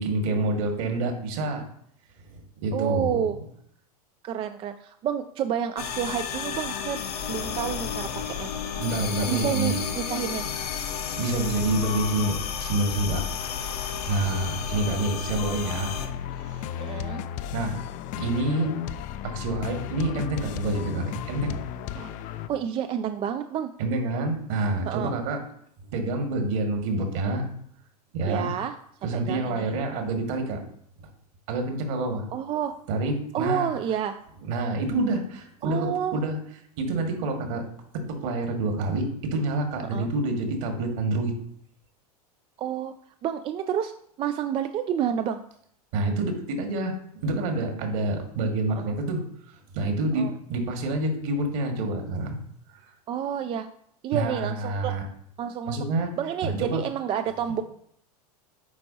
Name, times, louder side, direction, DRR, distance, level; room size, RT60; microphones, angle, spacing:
voice 1, 0.0-1.6 2.6-3.2 8.8-9.8 11.2-13.2 14.1-15.9 16.5-16.7 17.5-17.8 18.1-18.7 19.2-21.7 23.8-25.4 25.9-27.5 28.1-28.5 29.0-30.6 31.0-31.1 31.5-32.2 32.9-33.7 34.5-36.4 36.8-37.7 37.9-41.3 45.9-52.4 54.1-55.0 55.7-56.1 56.4-56.8, right 2 dB, 55° right, 3 dB, 1.8 m, -27 dB
voice 2, 2.7-3.4 4.2-7.0 7.3-8.5 9.2-10.5 16.8-17.2 22.0-22.1 22.5-23.7 24.9-25.2 28.3-28.8 29.1-29.7 32.3-32.7 33.3-34.2 35.6-36.2 39.9-40.1 42.6-42.9 43.2-43.9 44.2-45.4 48.7-48.9 50.1-50.3 53.1-53.7 54.0-54.9 55.4-55.8 56.2-57.6, right 9 dB, 25° right, 9 dB, 0.4 m, -29 dB
sound 1, 5.8-16.1, left 7 dB, 70° left, 1.0 m, -32 dB
sound 2, 16.0-22.5, left 10 dB, 40° left, 0.4 m, -34 dB
9.2 x 4.4 x 2.8 m, 0.67 s
hypercardioid pair, 95°, 20 cm